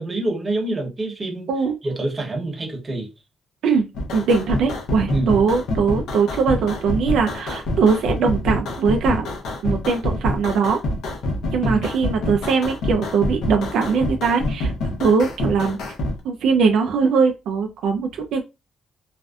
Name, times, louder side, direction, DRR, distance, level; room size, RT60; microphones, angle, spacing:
voice 1, 0.0-1.5 1.8-3.1 5.1-5.3 11.6-11.8, right 2 dB, 30° right, 0.9 m, -26 dB
sound 1, 3.9-16.2, left 1 dB, 80° left, 0.6 m, -26 dB
voice 2, 4.1-9.3 9.6-10.8 11.5-14.7 15.0-15.8 16.2-18.4, right 5 dB, 80° right, 0.4 m, -20 dB
2.5 x 2.1 x 2.3 m
cardioid pair, 90°, 0 cm